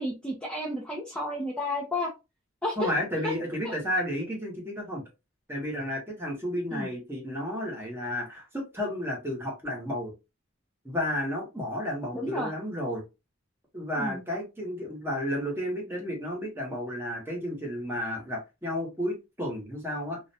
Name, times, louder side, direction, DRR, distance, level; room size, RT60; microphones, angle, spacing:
voice 1, 0.0-2.1 2.6-2.9 3.2-3.3 3.6-3.7 6.7-6.9 12.1-12.5 14.0-14.2, left 1 dB, 5° left, -3 dB, 0.5 m, -31 dB
voice 2, 2.8-5.0 5.5-10.1 10.8-13.0 13.7-20.2, equal, 10° right, -1 dB, 0.9 m, -32 dB
2.5 x 2.1 x 2.6 m, 0.26 s
head